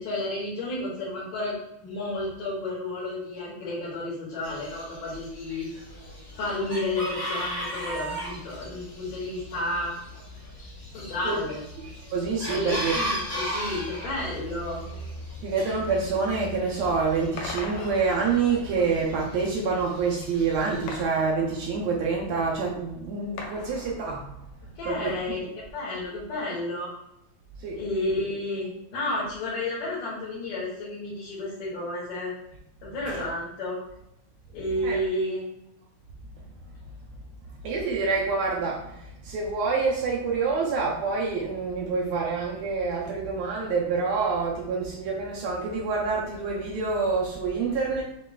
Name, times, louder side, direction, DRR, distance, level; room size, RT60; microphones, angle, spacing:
voice 1, 0.0-1.6 1.8-5.7 6.4-9.9 10.9-11.6 12.5-14.8 24.8-26.9 27.7-32.3 32.8-33.8 34.5-35.4, left 2 dB, 65° left, -7 dB, 2.7 m, -31 dB
Chicken rooster, 4.4-21.0, equal, 25° left, 1.5 m, -37 dB
voice 2, 11.8-12.9 15.4-24.3 24.8-25.1 27.6-27.8 33.0-33.2 34.8-35.0 37.6-48.0, right 4 dB, 75° right, -2 dB, 1.7 m, -27 dB
sound 1, 17.4-18.7 20.9-22.1 23.4-24.5, left 3 dB, 90° left, 2.3 m, -40 dB
7.4 x 3.1 x 2.3 m, 0.84 s
omnidirectional pair, 3.5 m